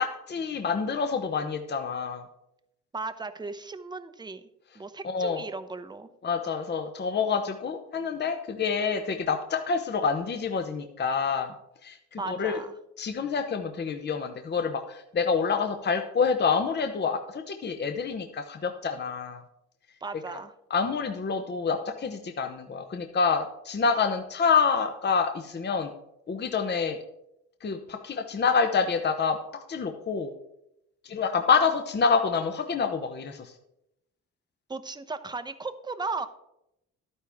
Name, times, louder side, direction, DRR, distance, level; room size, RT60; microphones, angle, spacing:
voice 1, 0.0-2.2 5.0-5.4 6.2-11.5 11.8-12.6 13.0-19.4 20.7-25.9 26.3-27.0 27.6-30.3 31.0-33.5, left 5 dB, 35° left, 6 dB, 0.9 m, -27 dB
voice 2, 2.9-4.4 4.8-6.1 12.2-12.7 20.0-20.5 34.7-36.3, right 3 dB, 15° right, 11 dB, 0.8 m, -36 dB
12.0 x 9.7 x 3.5 m, 0.83 s
cardioid pair, 90°, 30 cm